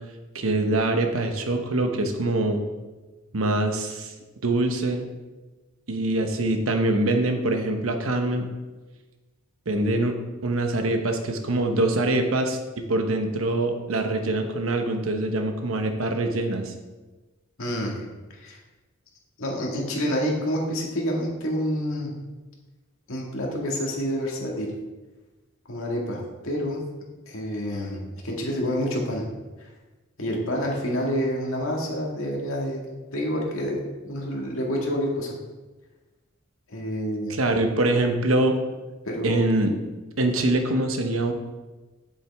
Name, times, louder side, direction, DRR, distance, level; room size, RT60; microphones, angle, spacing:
voice 1, 0.3-2.6 3.3-4.1 4.4-5.0 5.9-8.5 9.7-10.1 10.4-12.6 12.9-16.7 37.3-38.6 39.2-39.7 40.2-41.3, right 2 dB, 80° right, 5 dB, 1.0 m, -24 dB
voice 2, 17.6-18.0 18.4-18.6 19.4-22.1 23.1-24.7 25.7-26.8 27.3-29.2 29.6-29.7 30.2-32.8 33.1-35.3 36.7-37.4 39.1-39.5, equal, 85° left, -1 dB, 1.9 m, -28 dB
8.0 x 7.6 x 3.5 m, 1.2 s
head